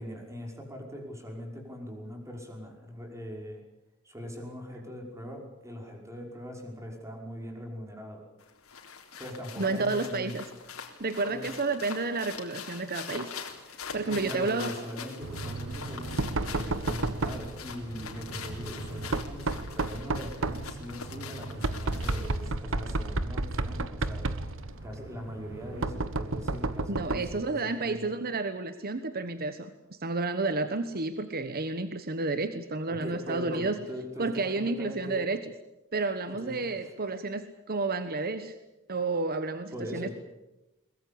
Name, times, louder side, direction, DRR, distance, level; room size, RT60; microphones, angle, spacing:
voice 1, 0.0-3.6 4.0-8.3 9.2-10.3 11.2-11.5 14.0-24.2 24.8-28.1 32.9-35.3 36.4-36.9 39.7-40.1, equal, 15° right, 2 dB, 5.5 m, -41 dB
sound 1, 8.4-22.5, left 6 dB, 75° left, 3.7 m, -44 dB
voice 2, 9.6-10.5 11.0-13.3 13.9-14.7 26.9-29.7 30.0-33.8 34.2-35.4 35.9-38.5 38.9-40.1, right 3 dB, 45° right, 10 dB, 1.2 m, -31 dB
sound 2, 13.8-27.0, left 1 dB, 40° left, 8.0 m, -55 dB
Knock, 15.2-27.4, right 2 dB, 65° right, 1.2 m, -33 dB
22.5 x 21.0 x 8.6 m, 0.98 s
head